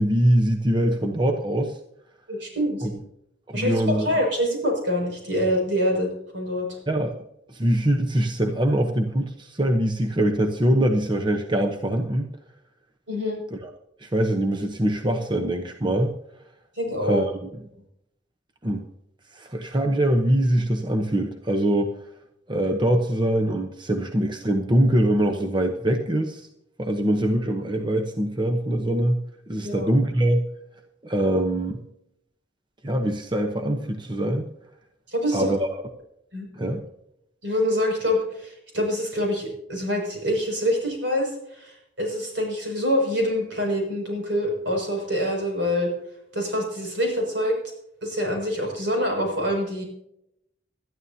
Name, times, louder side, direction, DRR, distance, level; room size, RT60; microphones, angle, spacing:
voice 1, 0.0-1.8 2.8-2.9 3.5-4.1 6.9-7.1 7.5-12.3 13.5-13.7 14.0-16.1 17.0-17.5 18.6-18.9 19.3-21.9 22.5-26.5 26.8-29.2 29.5-30.4 31.0-31.8 32.8-34.5 35.3-35.7 36.5-36.8, right 1 dB, 25° right, 3 dB, 0.9 m, -23 dB
voice 2, 2.3-2.9 3.5-6.7 13.1-13.4 16.8-17.2 29.6-29.9 35.1-35.5 36.3-36.5 37.4-45.9 46.3-47.6 48.0-49.8, equal, 75° right, 0 dB, 6.4 m, -25 dB
20.5 x 12.5 x 2.8 m, 0.78 s
head